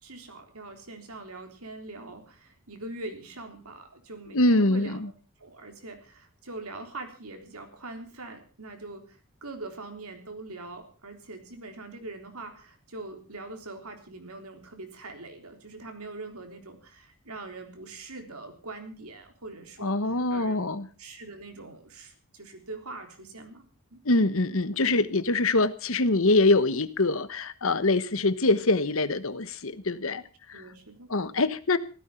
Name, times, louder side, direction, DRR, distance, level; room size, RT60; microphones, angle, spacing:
voice 1, 0.0-5.0 5.4-20.7 21.0-23.6 23.9-24.0 30.5-31.1, right 2 dB, 80° right, 5 dB, 3.7 m, -42 dB
voice 2, 4.3-5.1 19.8-20.9 24.0-30.2 30.5-30.6 31.1-31.8, left 2 dB, 65° left, 14 dB, 1.2 m, -24 dB
15.5 x 14.0 x 5.7 m, 0.37 s
head